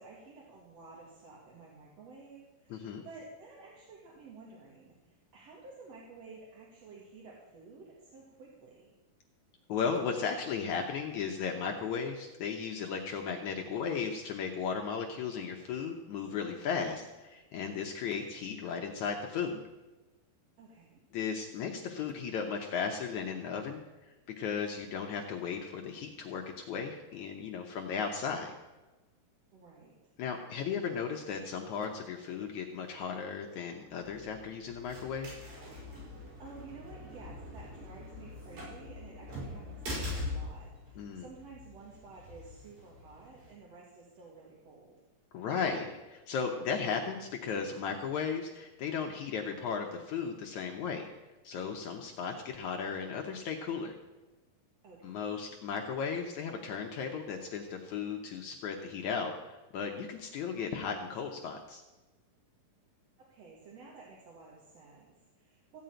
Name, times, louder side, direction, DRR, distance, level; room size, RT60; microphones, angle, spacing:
voice 1, 0.0-8.9 20.6-21.0 29.5-30.1 36.4-44.9 54.8-55.3 63.2-65.8, right 4 dB, 50° right, -4 dB, 2.8 m, -52 dB
voice 2, 2.7-3.0 9.7-19.6 21.1-28.5 30.2-35.4 41.0-41.3 45.3-51.1 51.4-54.0 55.0-61.8, left 6 dB, 70° left, 2 dB, 2.0 m, -35 dB
sound 1, 33.9-43.5, left 2 dB, 90° right, 7.4 m, -43 dB
15.5 x 5.5 x 9.0 m, 1.1 s
omnidirectional pair, 4.0 m